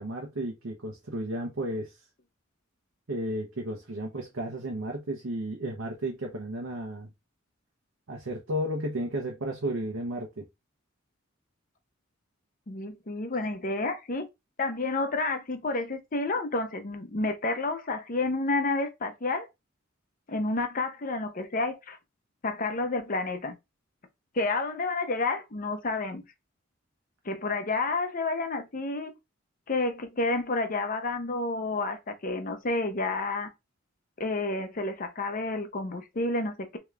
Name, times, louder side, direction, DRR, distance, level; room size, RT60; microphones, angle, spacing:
voice 1, 0.0-1.9 3.1-7.1 8.1-10.5, right 1 dB, 75° right, 0.9 m, -33 dB
voice 2, 12.7-14.3 14.6-19.5 20.3-22.0 22.4-23.6 24.3-26.2 27.2-29.1 29.7-33.5 34.2-36.8, left 2 dB, 40° left, 0.7 m, -30 dB
3.6 x 2.9 x 3.3 m
head